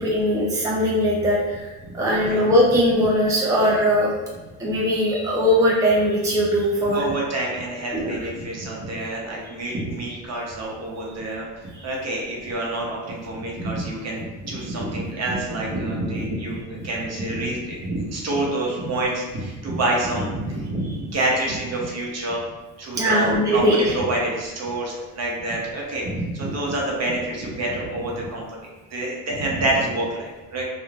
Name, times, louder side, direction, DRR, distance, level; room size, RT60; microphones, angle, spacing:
voice 1, 0.0-1.7 1.9-4.1 4.6-7.0 7.9-8.2 11.7-11.8 23.0-23.9, equal, 10° right, -5 dB, 0.5 m, -20 dB
voice 2, 6.9-11.5 11.8-22.4 22.8-30.6, right 1 dB, 45° right, -3 dB, 0.9 m, -27 dB
3.2 x 2.3 x 2.4 m, 1.2 s
cardioid pair, 90°, 37 cm